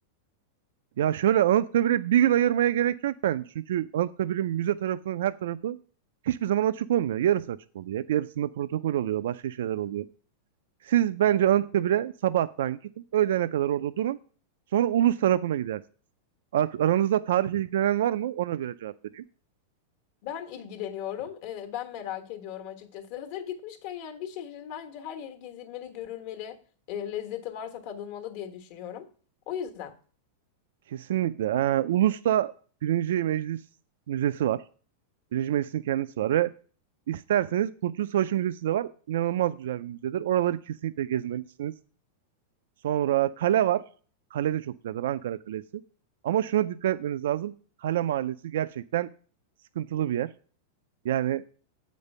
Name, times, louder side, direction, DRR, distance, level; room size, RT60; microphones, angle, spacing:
voice 1, 1.0-5.8 6.2-10.1 10.8-12.8 13.1-14.2 14.7-15.8 16.5-19.2 30.9-32.5 32.8-33.6 34.1-34.6 35.3-36.5 37.1-41.7 42.8-43.8 44.3-45.6 46.2-47.5 47.8-49.1 49.8-50.3 51.0-51.4, right 11 dB, 80° right, 0.3 m, -26 dB
voice 2, 20.2-26.6 26.9-29.1 29.5-30.0, left 10 dB, 55° left, 1.2 m, -37 dB
8.0 x 5.2 x 5.4 m
supercardioid pair, 150°, 0 cm